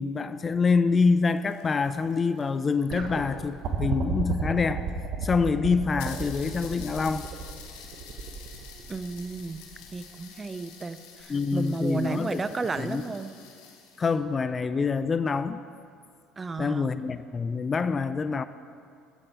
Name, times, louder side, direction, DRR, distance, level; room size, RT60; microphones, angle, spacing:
voice 1, 0.0-4.8 5.2-7.3 11.3-12.4 12.8-13.0 14.0-15.6 16.6-18.4, left 4 dB, 30° left, 13 dB, 0.4 m, -26 dB
sound 1, 1.0-3.8 4.7-4.8 5.0-5.1 5.4-5.5 6.0-14.2, left 7 dB, 75° left, 1.4 m, -48 dB
sound 2, 2.9-10.1 11.2-11.3, right 5 dB, 60° right, 1.3 m, -33 dB
voice 2, 8.9-9.6 9.9-13.3 16.4-16.9, right 4 dB, 25° right, 13 dB, 0.6 m, -33 dB
15.5 x 7.7 x 4.6 m, 2.3 s
hypercardioid pair, 60°, 0 cm